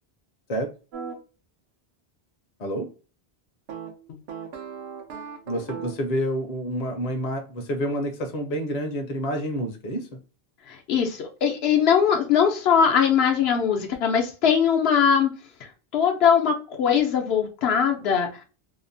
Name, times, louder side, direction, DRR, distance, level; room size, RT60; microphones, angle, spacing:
sound 1, 0.9-1.2 3.7-6.1, right 6 dB, 80° right, 0.9 m, -37 dB
voice 1, 5.5-10.1, equal, 45° left, 3 dB, 0.6 m, -28 dB
voice 2, 10.7-15.3 15.9-18.4, left 7 dB, 75° left, 2 dB, 0.8 m, -21 dB
2.8 x 2.0 x 2.5 m, 0.34 s
omnidirectional pair, 1.1 m